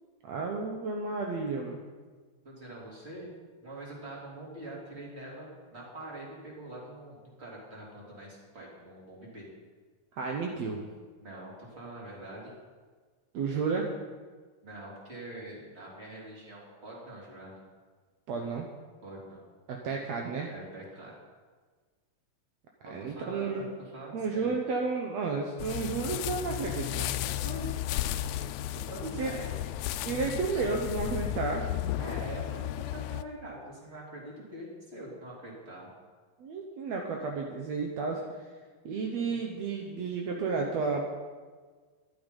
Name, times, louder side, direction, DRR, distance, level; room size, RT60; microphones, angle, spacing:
voice 1, 0.2-1.8 10.1-10.8 13.3-13.9 18.3-18.7 19.7-20.5 22.9-23.6 24.1-27.1 29.2-29.3 30.1-31.7 36.4-38.2 38.9-41.0, right 4 dB, 70° right, 1 dB, 2.1 m, -32 dB
voice 2, 2.4-3.3 3.6-9.5 11.2-12.5 14.6-17.6 19.0-19.4 20.5-21.1 22.8-24.5 27.2-27.7 28.9-29.5 32.0-35.9 39.2-39.5, right 1 dB, 20° right, -3 dB, 3.4 m, -44 dB
sound 1, 25.6-33.2, left 13 dB, 80° left, 1.7 m, -34 dB
13.0 x 11.5 x 5.4 m, 1.5 s
omnidirectional pair, 3.3 m